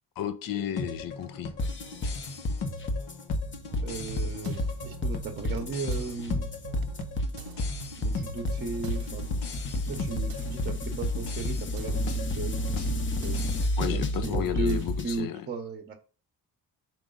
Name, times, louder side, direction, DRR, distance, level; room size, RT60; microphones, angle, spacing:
voice 1, 0.2-1.5 13.8-15.5, left 9 dB, 60° left, 10 dB, 0.7 m, -33 dB
sound 1, 0.8-13.7, left 4 dB, 85° left, 1.2 m, -39 dB
sound 2, 1.6-15.2, left 1 dB, 30° left, 0.8 m, -30 dB
sound 3, 3.4-15.1, right 7 dB, 70° right, 0.5 m, -44 dB
voice 2, 3.8-6.5 8.0-9.3 9.7-12.6 13.2-13.4 13.8-16.0, right 4 dB, 25° right, 4 dB, 0.8 m, -36 dB
5.2 x 4.7 x 3.8 m, 0.36 s
cardioid pair, 120°, 38 cm